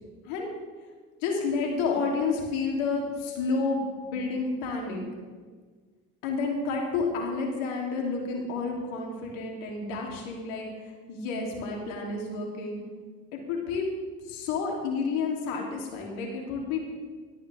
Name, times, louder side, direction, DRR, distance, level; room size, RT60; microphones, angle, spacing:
voice 1, 1.2-5.0 6.2-10.7 11.1-12.8 13.3-13.9 14.3-16.8, left 4 dB, 70° left, 0 dB, 3.3 m, -30 dB
17.0 x 12.5 x 3.6 m, 1.5 s
hypercardioid pair, 65°, 48 cm